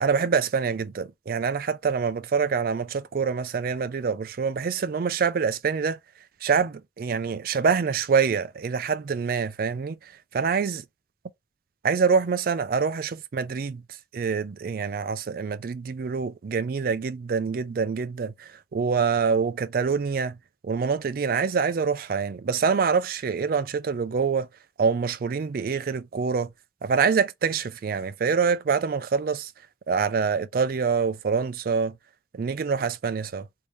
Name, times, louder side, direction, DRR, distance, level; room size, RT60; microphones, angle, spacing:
voice 1, 0.0-6.0 6.4-10.8 11.8-13.8 14.1-20.4 20.6-24.5 24.8-26.5 26.8-29.5 29.9-31.9 32.3-33.5, right 5 dB, 55° right, 0.4 m, -25 dB
3.1 x 2.7 x 3.4 m
head